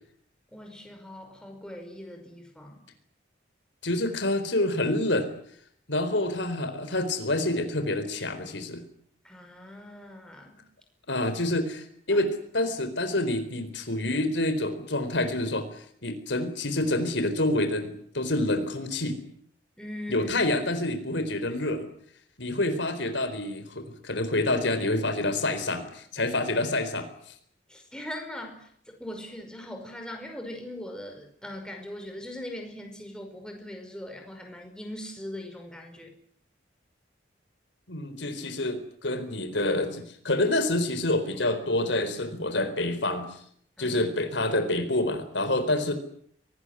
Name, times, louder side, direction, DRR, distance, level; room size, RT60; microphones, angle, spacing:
voice 1, 0.5-2.8 9.3-10.6 19.8-20.3 27.7-28.6 28.9-36.1 43.8-44.0, left 1 dB, 5° left, 3 dB, 5.3 m, -40 dB
voice 2, 3.8-5.3 5.9-8.8 11.1-19.2 20.1-21.9 22.4-27.1 37.9-43.3 43.8-45.9, left 1 dB, 75° left, 9 dB, 4.2 m, -27 dB
24.0 x 19.5 x 9.9 m, 0.66 s
head